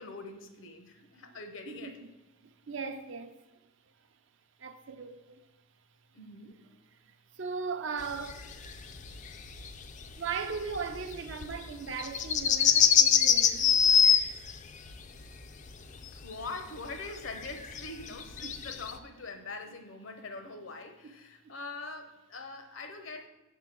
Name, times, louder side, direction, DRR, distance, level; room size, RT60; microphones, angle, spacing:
voice 1, 0.0-2.0 6.1-6.6 16.1-23.3, left 3 dB, 65° left, 0.8 m, -43 dB
voice 2, 1.7-2.1 2.7-3.3 4.6-5.4 7.4-8.4 10.2-13.8 18.4-18.6, right 5 dB, 60° right, 0.6 m, -38 dB
sound 1, 8.0-14.6 14.9-15.3 15.7-17.0 17.2-18.9, left 7 dB, 35° left, 0.4 m, -25 dB
6.7 x 3.7 x 5.9 m
head